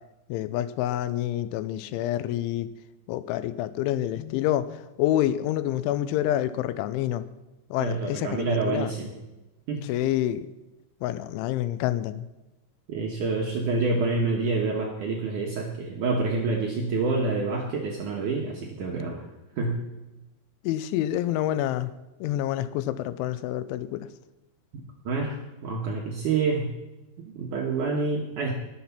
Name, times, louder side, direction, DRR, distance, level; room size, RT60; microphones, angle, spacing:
voice 1, 0.3-2.7 3.1-7.3 7.7-8.9 9.8-10.5 11.0-12.3 20.6-21.9 22.2-24.1, left 12 dB, 85° left, 14 dB, 3.0 m, -27 dB
voice 2, 7.8-9.1 9.7-9.8 12.9-19.3 19.6-19.8 25.1-26.7 27.2-28.5, right 3 dB, 70° right, 0 dB, 2.0 m, -27 dB
19.5 x 7.7 x 5.8 m, 1.0 s
omnidirectional pair, 5.4 m